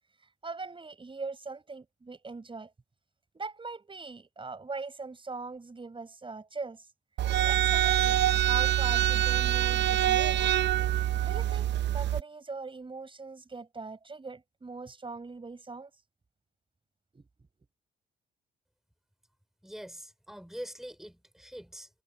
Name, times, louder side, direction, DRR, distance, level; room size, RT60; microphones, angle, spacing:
voice 1, 0.2-2.7 3.3-6.9 7.2-10.5 11.2-15.9 17.1-17.3, right 4 dB, 25° right, 5.9 m, -41 dB
sound 1, 7.2-12.2, right 12 dB, 65° right, 0.6 m, -25 dB
voice 2, 19.6-21.9, equal, ahead, 5.4 m, -44 dB
cardioid pair, 90°, 20 cm